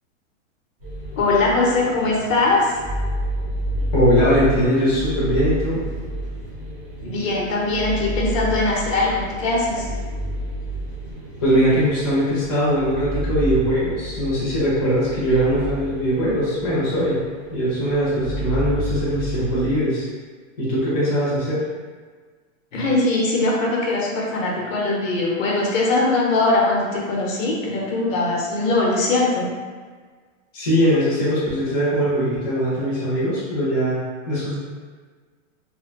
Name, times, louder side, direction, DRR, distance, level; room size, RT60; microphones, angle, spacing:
sound 1, 0.8-19.8, equal, 25° right, 0.4 m, -30 dB
voice 1, 1.1-2.7 7.0-9.9 22.7-29.5, left 2 dB, 85° left, -3 dB, 0.8 m, -21 dB
voice 2, 3.9-5.8 11.4-17.2 17.5-20.1 20.6-21.6 30.5-34.6, equal, 20° left, -10 dB, 0.6 m, -21 dB
2.6 x 2.1 x 2.4 m, 1.5 s
supercardioid pair, 175°, 38 cm